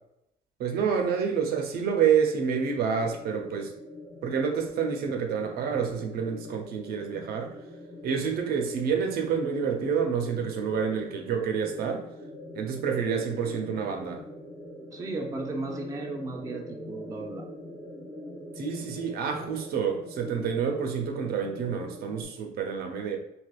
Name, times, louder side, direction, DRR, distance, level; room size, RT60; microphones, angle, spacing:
voice 1, 0.6-3.7 4.2-7.5 8.0-12.1 12.5-14.2 18.6-23.2, right 6 dB, 65° right, 0.6 m, -28 dB
sound 1, 2.5-22.2, left 1 dB, 15° left, 0.8 m, -44 dB
voice 2, 14.9-17.5, right 2 dB, 20° right, 0.5 m, -35 dB
3.3 x 2.8 x 2.3 m
cardioid pair, 110°, 17 cm